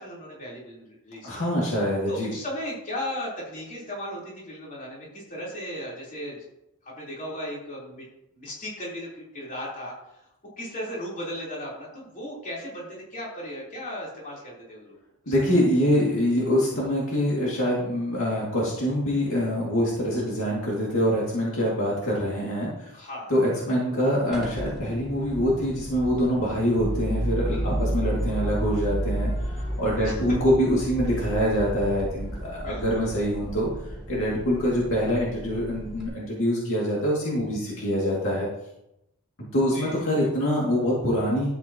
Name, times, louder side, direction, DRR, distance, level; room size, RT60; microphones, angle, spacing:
voice 1, 0.0-1.3 2.1-6.4 6.8-8.0 8.3-9.9 10.6-15.0 15.2-15.3 22.9-23.3 30.0-30.2 32.6-33.2 37.7-37.9 39.7-40.3, equal, 40° left, -5 dB, 3.8 m, -36 dB
voice 2, 1.2-2.3 15.3-22.9 23.3-33.7 34.1-38.5 39.5-41.5, equal, 65° left, -5 dB, 2.4 m, -25 dB
sound 1, 24.3-36.1, right 1 dB, 5° right, 3.0 m, -32 dB
12.5 x 8.0 x 3.0 m, 0.84 s
head